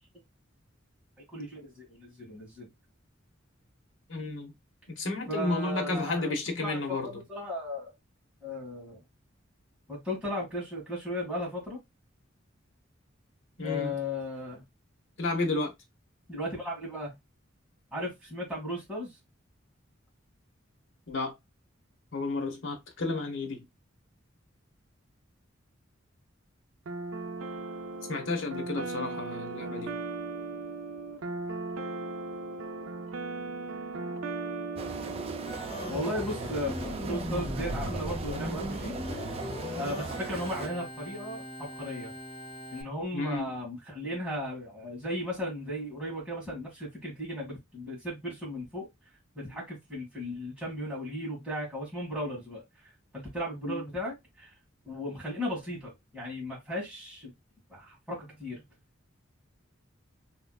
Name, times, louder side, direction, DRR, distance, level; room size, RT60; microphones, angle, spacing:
voice 1, 1.3-2.7 5.3-7.9 8.4-9.0 9.9-11.8 13.6-14.6 16.3-17.1 17.9-19.1 35.9-38.9 39.7-42.1 42.7-48.9 49.4-52.6 53.1-54.5 54.9-57.3 57.7-58.6, left 1 dB, 5° right, 1.8 m, -36 dB
voice 2, 4.1-4.5 4.9-7.1 13.6-13.9 15.2-15.7 21.1-21.3 22.1-23.6 28.1-30.0 43.1-43.5 53.6-53.8, left 3 dB, 70° left, 1.0 m, -32 dB
sound 1, 26.9-35.6, right 3 dB, 85° right, 0.5 m, -37 dB
sound 2, 34.8-40.7, right 3 dB, 30° right, 0.4 m, -38 dB
Organ, 35.5-42.8, left 1 dB, 25° left, 1.1 m, -38 dB
3.4 x 2.9 x 2.3 m
head